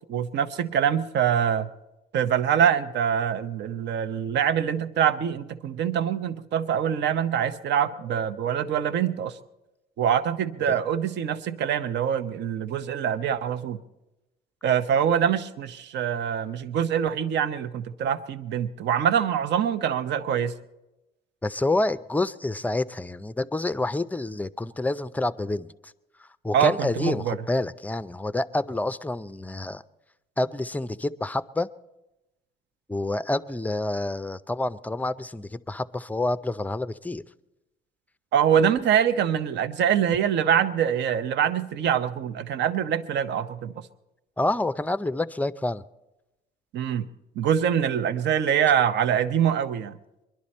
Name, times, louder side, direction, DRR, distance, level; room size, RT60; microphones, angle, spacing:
voice 1, 0.1-1.7 2.1-9.4 10.0-13.8 14.6-20.5 26.5-27.4 38.3-43.7 46.7-47.1 47.4-50.0, right 8 dB, 65° right, 11 dB, 0.8 m, -24 dB
voice 2, 21.4-25.9 26.2-29.8 30.4-31.7 32.9-37.2 44.4-45.8, left 2 dB, 10° left, 14 dB, 0.4 m, -28 dB
22.5 x 11.5 x 4.3 m, 0.98 s
cardioid pair, 95°, 19 cm